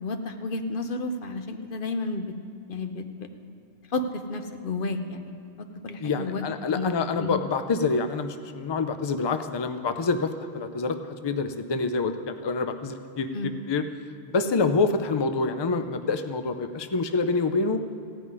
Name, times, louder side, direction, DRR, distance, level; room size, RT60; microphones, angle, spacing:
voice 1, 0.0-2.3 2.7-3.3 3.9-6.4 6.8-7.4 13.3-13.5, left 3 dB, 55° left, 7 dB, 0.9 m, -32 dB
voice 2, 6.0-13.9 14.3-17.8, left 4 dB, 35° left, 9 dB, 0.4 m, -27 dB
14.5 x 5.6 x 9.5 m, 2.5 s
omnidirectional pair, 1.2 m